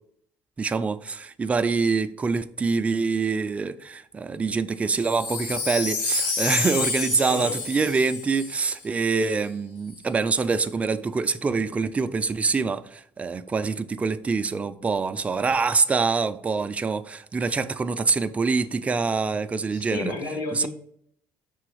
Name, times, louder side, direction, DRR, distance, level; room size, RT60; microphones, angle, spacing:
voice 1, 0.6-20.1 20.6-20.7, right 4 dB, 15° right, 0.3 m, -25 dB
Wind chime, 5.0-9.3 9.9-10.0, left 4 dB, 65° left, 1.2 m, -30 dB
voice 2, 7.3-7.6 19.7-20.7, left 3 dB, 85° left, 1.3 m, -32 dB
5.3 x 3.8 x 4.8 m
cardioid pair, 140°, 8 cm